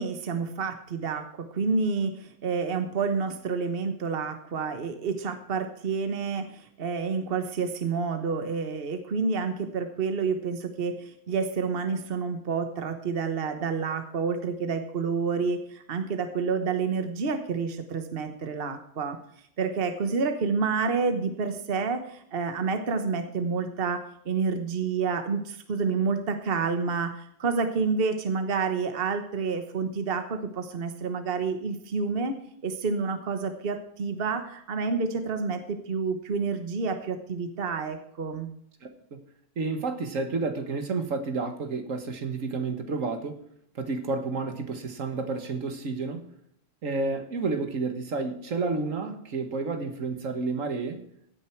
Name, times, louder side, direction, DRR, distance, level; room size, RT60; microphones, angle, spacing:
voice 1, 0.0-19.2 19.6-32.4 32.6-38.5, right 5 dB, 50° right, 8 dB, 1.4 m, -29 dB
voice 2, 38.8-39.2 39.6-43.4 43.8-46.3 46.8-51.1, right 3 dB, 80° right, 7 dB, 1.9 m, -30 dB
16.5 x 9.2 x 4.6 m, 0.68 s
omnidirectional pair, 1.3 m